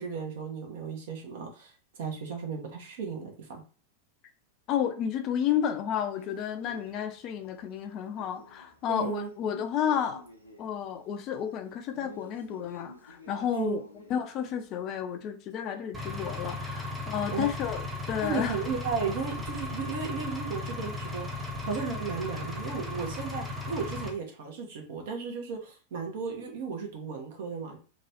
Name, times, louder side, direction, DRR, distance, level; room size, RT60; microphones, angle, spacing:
voice 1, 0.0-3.6 8.9-9.3 13.5-13.8 17.3-17.5 18.2-27.8, right 5 dB, 55° right, 0.8 m, -35 dB
voice 2, 4.7-10.2 10.6-13.8 14.1-18.6, left 9 dB, 35° left, 0.4 m, -31 dB
Male speech man speaking, 6.1-14.7, equal, 90° left, 0.5 m, -53 dB
Engine, 15.9-24.1, left 2 dB, 15° right, 0.7 m, -36 dB
3.0 x 2.2 x 2.8 m
figure-of-eight pair, 90°, 0 cm